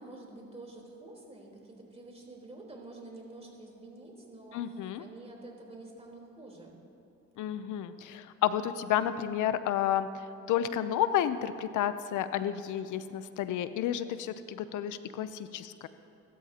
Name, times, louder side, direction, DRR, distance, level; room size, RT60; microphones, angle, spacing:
voice 1, 0.0-6.7, right 2 dB, 20° right, -2 dB, 3.9 m, -48 dB
voice 2, 4.5-5.0 7.4-15.9, left 10 dB, 80° left, 12 dB, 0.6 m, -31 dB
25.5 x 13.5 x 2.9 m, 2.9 s
cardioid pair, 90°, 30 cm